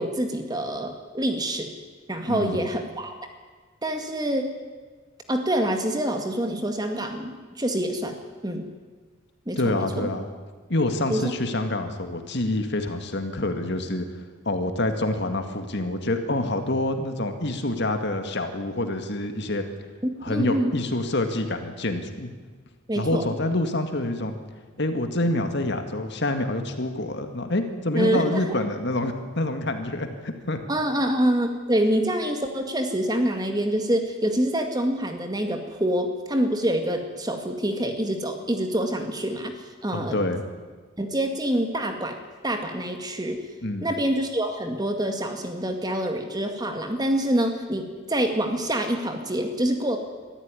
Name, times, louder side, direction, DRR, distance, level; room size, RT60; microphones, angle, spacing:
voice 1, 0.0-1.7 2.1-3.2 3.8-4.5 5.3-8.2 8.4-8.6 9.5-10.1 11.1-11.3 20.0-20.7 22.9-23.3 27.9-28.5 30.7-39.6 39.8-40.2 41.0-42.2 42.4-43.4 43.8-50.0, right 1 dB, 20° right, 5 dB, 2.1 m, -26 dB
voice 2, 2.3-2.7 9.6-10.3 10.7-19.7 20.2-22.3 23.0-24.4 24.8-30.6 39.9-40.4 43.6-43.9, left 1 dB, 55° left, 6 dB, 2.1 m, -27 dB
23.5 x 14.0 x 9.9 m, 1.4 s
head